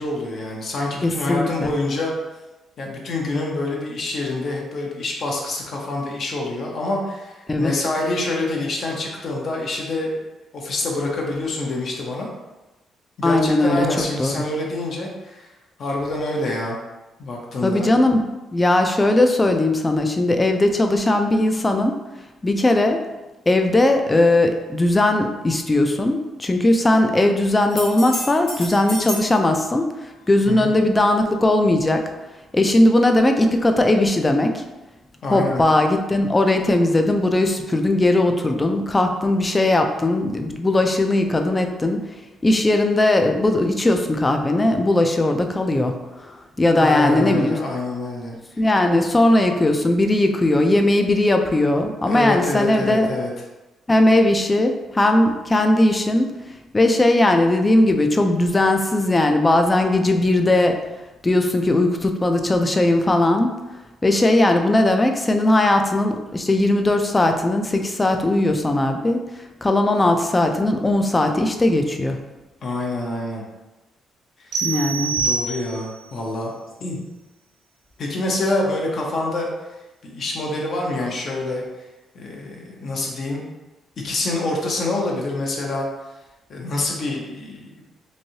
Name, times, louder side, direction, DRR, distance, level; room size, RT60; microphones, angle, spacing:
voice 1, 0.0-2.1 2.8-10.1 10.5-12.3 13.2-15.5 15.8-16.8 17.2-17.9 30.4-30.8 35.2-35.6 46.8-48.6 52.0-53.3 72.6-73.4 74.4-74.6 75.2-76.5 76.8-77.0 78.0-79.5 80.0-81.6 82.1-83.4 84.0-85.9 86.5-87.7, left 2 dB, 55° left, -1 dB, 0.7 m, -26 dB
voice 2, 1.0-1.7 7.5-7.7 13.2-13.9 14.2-14.4 17.6-18.3 18.5-21.9 22.4-23.0 23.5-32.1 32.5-34.6 35.3-42.0 42.4-47.6 48.6-53.1 53.9-56.3 56.7-60.8 61.2-63.6 64.0-69.2 69.6-72.2 74.6-75.1, left 1 dB, 20° left, 5 dB, 0.4 m, -18 dB
sound 1, 27.7-29.3 33.0-33.1, left 2 dB, 85° left, 1.3 m, -31 dB
sound 2, 74.5-76.1, right 5 dB, 65° right, 0.5 m, -25 dB
3.1 x 2.6 x 2.7 m, 1.1 s
cardioid pair, 90°, 0 cm